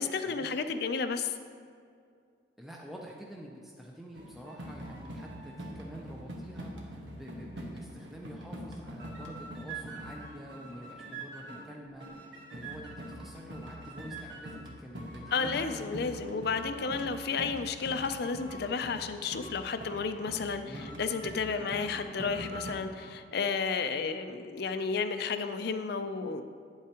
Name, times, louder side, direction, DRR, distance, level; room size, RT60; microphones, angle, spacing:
voice 1, 0.0-1.3 15.3-26.4, left 5 dB, 60° left, 9 dB, 0.5 m, -32 dB
voice 2, 2.6-16.2 16.5-17.1 20.6-21.0 21.6-21.7, equal, ahead, -2 dB, 0.5 m, -47 dB
sound 1, 4.1-11.7 12.0-22.7, right 1 dB, 85° right, 1.3 m, -44 dB
9.8 x 8.3 x 3.0 m, 2.2 s
head